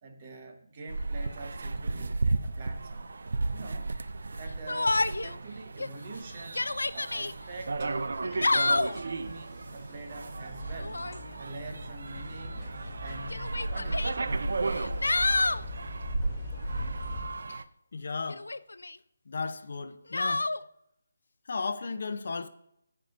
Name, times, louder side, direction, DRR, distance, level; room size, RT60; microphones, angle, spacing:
voice 1, 0.0-3.1 3.5-3.9 4.4-6.6 6.9-7.9 8.6-11.0 11.4-12.6 13.0-14.2, right 3 dB, 35° right, 1.3 m, -45 dB
sound 1, 0.9-17.6, right 3 dB, 65° right, 0.5 m, -34 dB
Yell, 4.7-5.4 5.8-5.9 6.4-7.3 8.2-9.0 10.7-11.2 12.3-12.4 13.3-14.1 14.7-15.6 18.3-19.0 20.1-20.6, left 2 dB, 85° left, 0.4 m, -28 dB
sound 2, 7.1-17.3, left 1 dB, 5° right, 3.0 m, -42 dB
voice 2, 17.9-18.5 19.3-20.4 21.5-22.5, left 4 dB, 60° left, 0.7 m, -34 dB
14.0 x 5.7 x 2.7 m
figure-of-eight pair, 160°, 0 cm